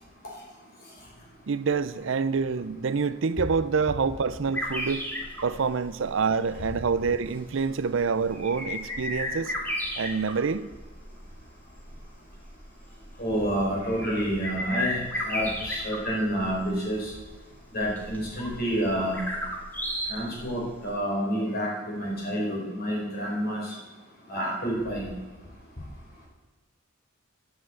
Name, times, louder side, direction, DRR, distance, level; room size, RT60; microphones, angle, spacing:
voice 1, 1.5-5.0 5.4-9.5 10.0-10.6, right 5 dB, 65° right, 0.5 m, -27 dB
sound 1, 4.5-20.8, equal, 10° left, 2.2 m, -35 dB
voice 2, 13.2-17.1 17.7-19.2 20.1-23.6 24.3-25.1, equal, 50° left, 5.1 m, -29 dB
10.0 x 7.8 x 7.9 m
head